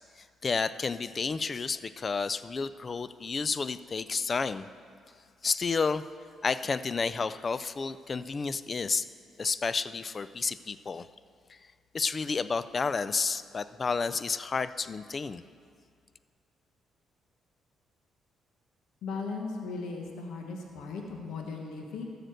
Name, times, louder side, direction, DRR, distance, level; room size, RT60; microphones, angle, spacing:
voice 1, 0.2-4.7 5.4-6.0 6.4-9.1 9.4-11.1 11.5-11.6 11.9-15.4, left 4 dB, 35° left, 14 dB, 0.4 m, -31 dB
voice 2, 19.0-22.1, left 4 dB, 80° left, 2 dB, 1.3 m, -37 dB
14.5 x 6.6 x 6.4 m, 2.2 s
cardioid pair, 90°, 0 cm